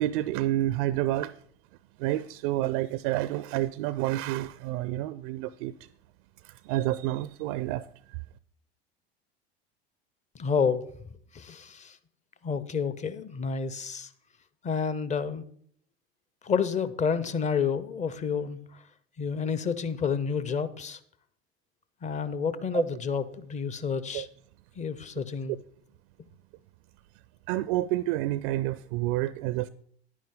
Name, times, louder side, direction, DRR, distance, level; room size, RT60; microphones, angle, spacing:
voice 1, 0.0-1.4 2.0-5.7 6.4-7.9 22.7-22.8 24.1-24.3 27.5-29.7, right 15 dB, 50° right, 0.4 m, -29 dB
voice 2, 10.3-10.8 11.3-12.0 12.4-14.1 14.6-15.4 16.4-18.6 19.2-21.0 22.0-24.3 24.8-25.5, left 6 dB, 25° left, 0.7 m, -29 dB
10.5 x 9.4 x 3.8 m
figure-of-eight pair, 75°, 31 cm